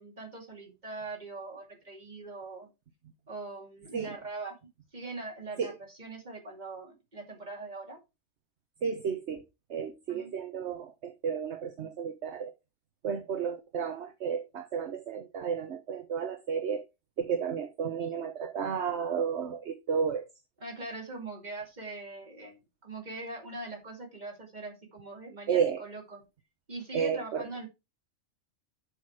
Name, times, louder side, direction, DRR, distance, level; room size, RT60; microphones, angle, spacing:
voice 1, 0.0-2.7 3.3-4.6 4.9-8.0 10.1-10.3 20.6-26.2 26.7-27.7, right 3 dB, 35° right, 2.6 m, -42 dB
voice 2, 8.8-9.4 9.7-12.5 13.0-16.8 17.2-20.2 25.5-25.8 26.9-27.5, right 7 dB, 65° right, 1.2 m, -32 dB
7.0 x 6.5 x 4.7 m
omnidirectional pair, 1.3 m